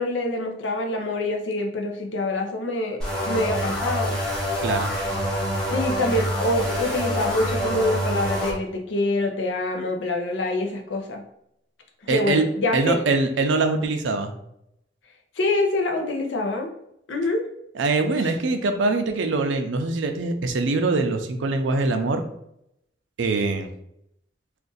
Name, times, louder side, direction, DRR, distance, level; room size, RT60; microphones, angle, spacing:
voice 1, 0.0-3.0 3.3-4.2 5.7-11.2 12.1-13.1 15.4-16.7 17.1-17.5, left 2 dB, 90° left, 3 dB, 0.6 m, -25 dB
sound 1, 3.0-8.5, equal, 5° left, 0.8 m, -26 dB
voice 2, 4.6-4.9 12.1-12.5 12.7-14.3 17.8-22.2 23.2-23.7, right 3 dB, 90° right, 6 dB, 0.4 m, -23 dB
2.5 x 2.4 x 3.8 m, 0.77 s
head